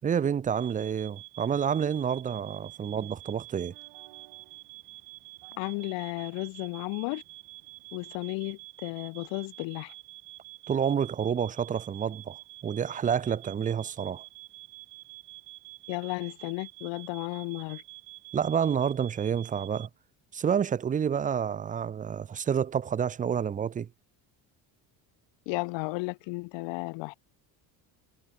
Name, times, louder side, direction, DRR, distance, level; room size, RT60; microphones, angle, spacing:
voice 1, 0.0-3.7 10.7-14.2 18.3-19.9 20.3-23.9, right 8 dB, 20° right, 0.4 m, -29 dB
sound 1, 0.6-19.9, right 28 dB, 90° right, 2.7 m, -48 dB
sound 2, 2.6-8.2, right 20 dB, 75° right, 6.6 m, -61 dB
voice 2, 5.6-7.2 7.9-9.9 15.9-17.8 25.5-27.1, left 27 dB, 75° left, 0.8 m, -34 dB
cardioid pair, 140°, 44 cm